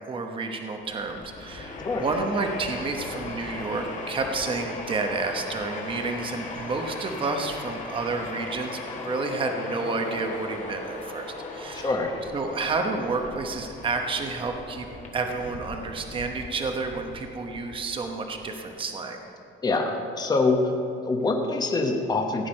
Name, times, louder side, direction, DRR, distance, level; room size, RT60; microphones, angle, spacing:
voice 1, 0.1-11.9 12.3-14.9 15.1-19.2, right 3 dB, 25° right, 4 dB, 1.0 m, -30 dB
Train, 0.9-18.5, left 2 dB, 35° left, 1.7 m, -38 dB
voice 2, 11.7-12.2 19.6-20.7 21.0-22.5, left 3 dB, 20° left, 3 dB, 1.1 m, -25 dB
16.5 x 9.5 x 5.4 m, 2.8 s
cardioid pair, 175°, 20 cm